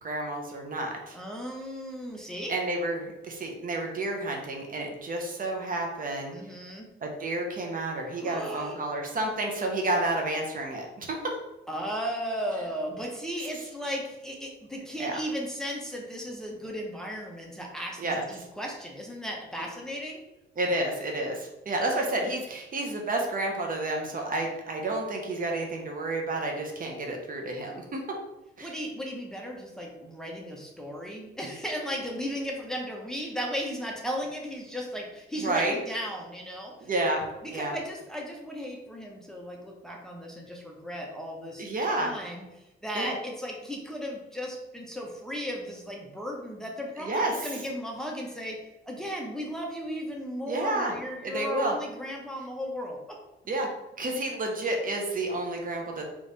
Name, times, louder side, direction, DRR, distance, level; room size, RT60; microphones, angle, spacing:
voice 1, 0.0-1.2 2.5-6.3 7.0-11.2 15.0-15.2 18.0-18.2 20.6-28.0 28.6-28.7 35.4-35.7 36.9-37.7 41.6-42.1 42.9-43.1 47.0-47.3 50.5-51.0 51.2-51.7 53.5-53.7 54.0-56.0, right 2 dB, 45° right, 1 dB, 0.8 m, -30 dB
voice 2, 1.1-2.5 6.3-6.9 8.2-8.8 11.7-20.2 28.6-36.9 37.4-41.7 42.0-42.4 42.8-48.6 48.8-53.0, equal, 5° left, -1 dB, 0.9 m, -35 dB
3.4 x 3.1 x 4.0 m, 0.99 s
cardioid pair, 90°, 20 cm